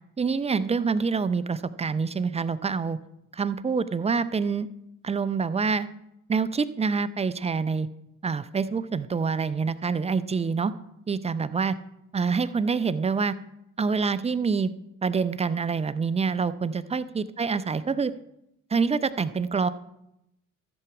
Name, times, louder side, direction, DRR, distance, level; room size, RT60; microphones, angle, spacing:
voice 1, 0.2-3.0 3.3-4.7 5.0-5.9 6.3-7.9 8.2-10.7 11.1-11.7 12.1-13.4 13.8-14.7 15.0-18.1 18.7-19.7, right 5 dB, 15° right, 15 dB, 0.6 m, -26 dB
13.5 x 7.1 x 4.8 m, 0.84 s
hypercardioid pair, 55°, 40 cm